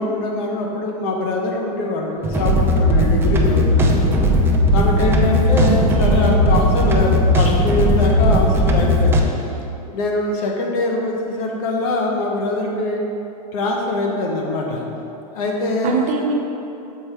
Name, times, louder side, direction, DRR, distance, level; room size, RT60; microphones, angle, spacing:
voice 1, 0.0-4.2 4.7-9.2 9.9-13.0 13.5-14.8 15.3-16.0, left 2 dB, 60° left, 0 dB, 1.0 m, -23 dB
sound 1, 2.2-9.2, left 1 dB, 10° right, 0.5 m, -16 dB
voice 2, 5.5-6.4 15.8-16.3, right 4 dB, 35° right, 0 dB, 0.8 m, -23 dB
6.6 x 4.3 x 3.4 m, 2.8 s
hypercardioid pair, 130°, 21 cm